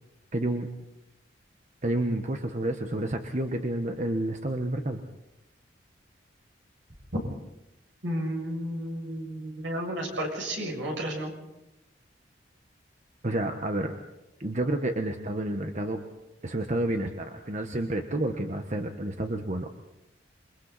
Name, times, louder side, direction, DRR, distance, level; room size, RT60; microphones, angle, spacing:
voice 1, 0.3-0.7 1.8-5.0 13.2-13.9 14.4-16.0 16.4-19.7, right 1 dB, 40° right, 5 dB, 1.2 m, -30 dB
voice 2, 8.0-11.3, equal, 75° right, 0 dB, 7.0 m, -32 dB
28.5 x 23.5 x 4.2 m, 0.90 s
head